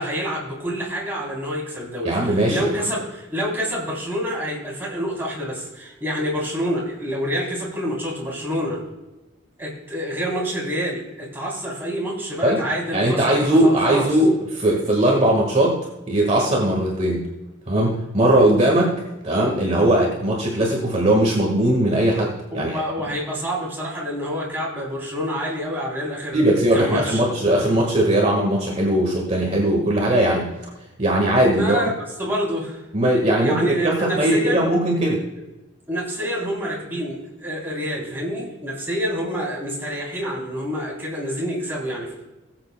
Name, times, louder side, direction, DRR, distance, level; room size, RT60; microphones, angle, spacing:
voice 1, 0.0-8.8 9.6-14.1 22.5-27.2 31.5-31.9 32.2-32.8 33.4-34.7 35.9-42.1, equal, 10° right, -5 dB, 3.5 m, -27 dB
voice 2, 2.0-2.7 12.4-12.6 12.9-15.8 16.1-17.3 17.7-22.8 26.3-30.5 31.0-31.8 32.9-35.2, right 1 dB, 35° right, -1 dB, 1.6 m, -19 dB
19.0 x 8.0 x 2.2 m, 1.1 s
head